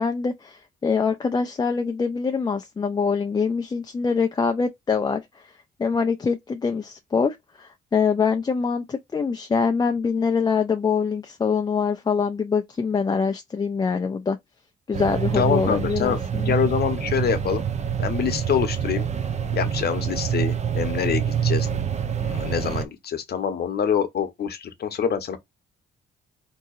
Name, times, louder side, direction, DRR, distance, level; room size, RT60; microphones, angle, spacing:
voice 1, 0.0-5.5 5.8-14.4 14.9-16.5, left 5 dB, 20° left, 0.4 m, -24 dB
sound 1, 14.9-22.9, right 8 dB, 35° right, 0.5 m, -26 dB
voice 2, 15.3-16.2 16.5-17.6 18.0-19.1 19.5-21.7 22.2-25.4, left 8 dB, 55° left, 0.8 m, -25 dB
3.7 x 2.7 x 2.4 m
cardioid pair, 90°, 20 cm